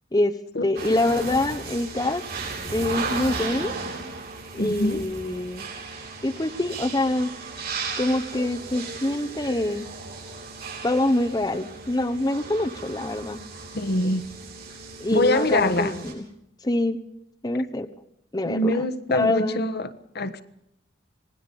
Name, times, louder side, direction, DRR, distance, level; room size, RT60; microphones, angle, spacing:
voice 1, 0.6-2.2 2.7-3.7 4.5-5.7 6.2-7.3 8.0-9.9 10.8-13.4 15.0-16.3 16.6-17.0 17.4-17.9 18.3-19.7, left 1 dB, 20° left, 1.0 m, -25 dB
sound 1, 0.8-16.1, right 4 dB, 55° right, 8.0 m, -36 dB
voice 2, 4.6-5.0 13.7-14.3 15.1-16.0 18.4-20.4, left 1 dB, 60° left, 1.3 m, -24 dB
26.5 x 19.5 x 5.4 m
head